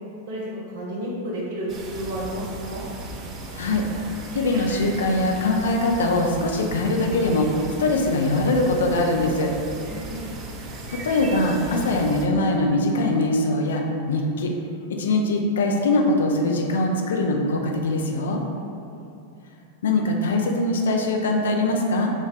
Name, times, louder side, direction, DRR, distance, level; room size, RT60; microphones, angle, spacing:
voice 1, 0.3-2.8 9.7-10.3 18.5-19.1, equal, 55° right, -5 dB, 0.8 m, -32 dB
sound 1, 1.7-12.3, right 2 dB, 35° right, 0.4 m, -37 dB
voice 2, 4.3-9.5 10.9-14.5 14.9-18.4 19.8-22.1, left 2 dB, 65° left, 1 dB, 0.3 m, -22 dB
2.3 x 2.3 x 3.7 m, 2.6 s
figure-of-eight pair, 90°, 0 cm